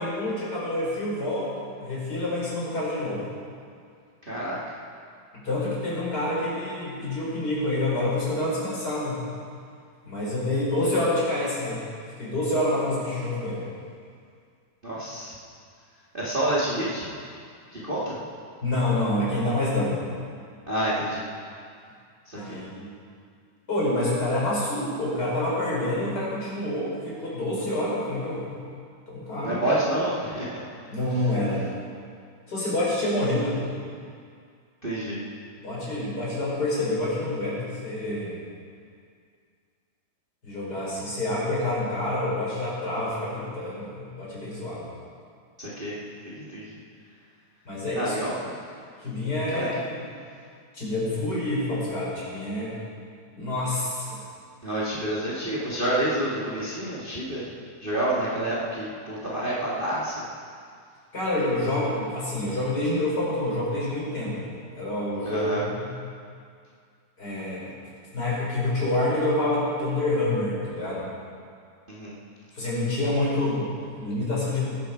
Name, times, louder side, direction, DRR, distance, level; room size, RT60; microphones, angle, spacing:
voice 1, 0.0-3.2 5.3-9.2 10.0-11.8 12.2-13.7 18.6-20.1 22.3-22.9 23.7-28.5 29.1-29.6 30.9-31.6 32.5-33.6 35.6-38.4 40.4-44.9 47.6-48.2 49.0-50.0 50.7-52.8 53.3-54.2 61.1-65.9 67.2-67.7 68.1-71.1 72.5-74.7, left 1 dB, 20° left, -7 dB, 5.2 m, -27 dB
voice 2, 4.2-4.6 14.8-15.4 16.1-17.1 17.7-18.2 20.7-21.3 22.2-22.6 29.4-30.6 34.8-35.2 45.6-46.0 46.2-46.8 47.9-48.5 49.5-49.7 54.6-57.4 57.8-60.2 65.2-65.6 71.9-72.1, right 1 dB, 75° right, -7 dB, 0.5 m, -28 dB
20.5 x 11.5 x 4.6 m, 2.2 s
omnidirectional pair, 4.9 m